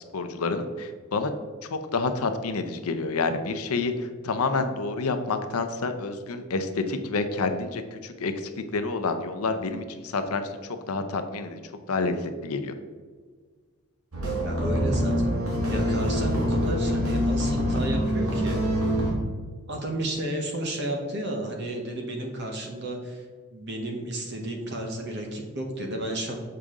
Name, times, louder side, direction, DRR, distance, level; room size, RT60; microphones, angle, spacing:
voice 1, 0.1-1.3 1.7-11.6 11.9-12.7, left 3 dB, 80° left, 8 dB, 0.6 m, -28 dB
sound 1, 14.1-19.1, equal, 75° right, 1.7 m, -25 dB
voice 2, 14.4-15.4 15.7-18.6 19.7-23.2 23.5-26.4, right 1 dB, 50° right, 2 dB, 1.0 m, -32 dB
6.8 x 4.8 x 3.7 m, 1.5 s
head